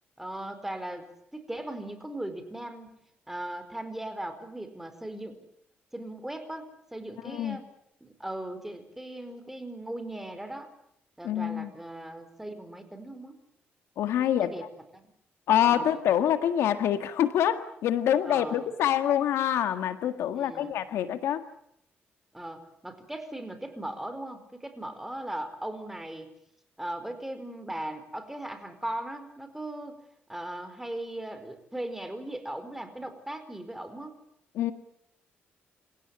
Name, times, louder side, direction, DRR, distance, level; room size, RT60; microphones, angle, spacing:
voice 1, 0.2-3.0 3.3-5.4 5.9-7.7 8.0-10.7 11.2-13.4 14.2-14.7 14.9-15.0 15.6-16.0 18.3-18.6 20.3-20.8 22.3-26.3 26.8-30.0 30.3-34.1, right 1 dB, 5° right, 9 dB, 4.7 m, -38 dB
voice 2, 7.2-7.6 11.2-11.7 14.0-14.5 15.5-21.4 34.6-34.7, left 10 dB, 85° left, 9 dB, 1.8 m, -26 dB
27.5 x 16.5 x 9.0 m, 0.74 s
cardioid pair, 90°, 4 cm